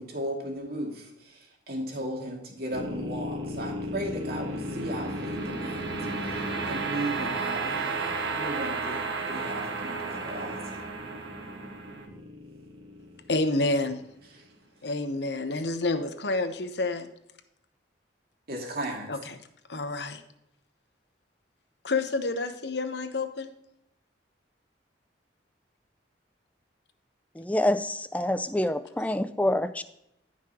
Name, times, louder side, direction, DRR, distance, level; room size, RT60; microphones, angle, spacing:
voice 1, 0.0-5.9 6.2-10.9 14.3-14.5 18.5-19.1, right 1 dB, 55° right, 0 dB, 2.4 m, -36 dB
sound 1, 2.7-13.9, right 2 dB, 90° right, 1.7 m, -33 dB
voice 2, 13.3-14.0 14.8-17.1 19.1-19.4 19.7-20.2 21.8-23.5, left 2 dB, 65° left, 8 dB, 1.0 m, -29 dB
voice 3, 27.4-29.8, left 1 dB, 10° left, 12 dB, 0.4 m, -27 dB
14.5 x 5.9 x 3.0 m, 0.82 s
head